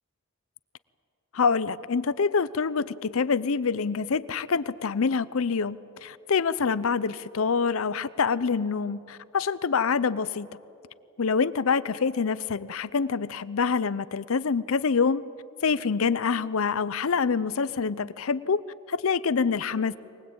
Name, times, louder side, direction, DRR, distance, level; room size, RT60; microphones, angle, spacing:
voice 1, 1.3-10.5 11.2-15.2 15.6-18.6 18.9-20.0, left 5 dB, 65° left, 17 dB, 0.6 m, -26 dB
23.5 x 20.0 x 8.7 m, 2.8 s
head